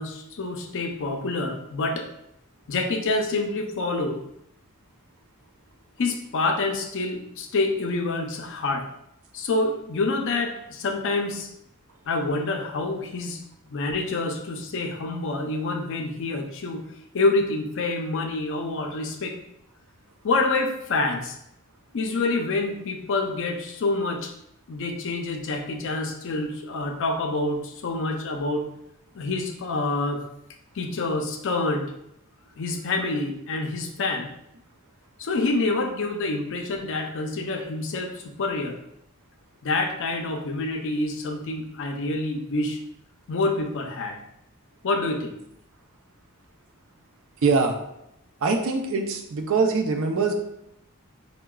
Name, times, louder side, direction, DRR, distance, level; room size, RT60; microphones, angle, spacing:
voice 1, 0.0-2.1 2.7-4.2 6.0-8.9 9.3-11.5 12.1-13.4 13.7-16.8 17.1-19.4 20.2-21.4 21.9-24.3 24.7-28.7 29.1-30.3 30.7-31.9 32.6-34.3 35.2-38.8 39.6-42.8 43.3-44.2 44.8-45.4, left 2 dB, 60° left, 3 dB, 0.5 m, -27 dB
voice 2, 47.4-47.8 48.4-50.3, right 4 dB, 65° right, 4 dB, 0.5 m, -23 dB
4.6 x 2.1 x 2.2 m, 0.79 s
head